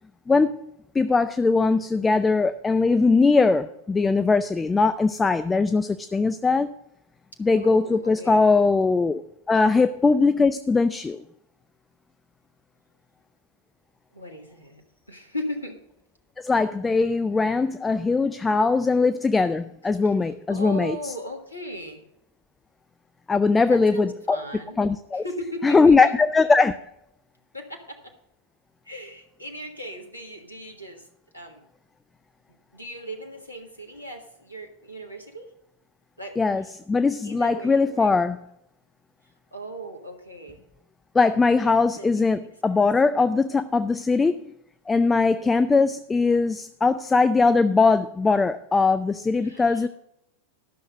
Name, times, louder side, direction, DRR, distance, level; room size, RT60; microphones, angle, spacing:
voice 1, 0.3-0.6 0.9-6.7 7.4-9.2 9.5-11.2 16.4-21.0 23.3-24.4 24.8-25.2 25.6-26.8 36.4-38.4 41.1-44.5 44.9-49.9, left 4 dB, 15° left, 0.4 m, -20 dB
voice 2, 7.6-8.4 14.1-14.8 15.1-15.8 20.5-22.0 23.7-24.8 25.1-26.0 27.5-28.2 28.8-31.1 31.3-31.6 32.7-35.5 36.2-36.6 37.2-38.1 39.5-40.6 41.6-42.3 45.0-45.2 49.4-49.9, equal, 85° left, 1.5 m, -37 dB
12.5 x 6.5 x 6.4 m
figure-of-eight pair, 90°, 0 cm